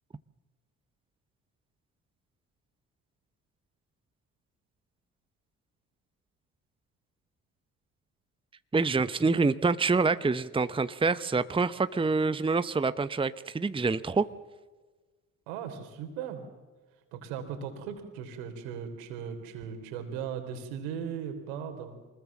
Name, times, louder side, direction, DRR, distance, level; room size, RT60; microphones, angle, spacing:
voice 1, 8.7-14.3, right 4 dB, 10° right, 14 dB, 0.9 m, -26 dB
voice 2, 15.5-16.5 17.1-22.0, right 7 dB, 80° right, 7 dB, 3.5 m, -38 dB
24.0 x 20.5 x 7.3 m, 1.3 s
hypercardioid pair, 55°, 42 cm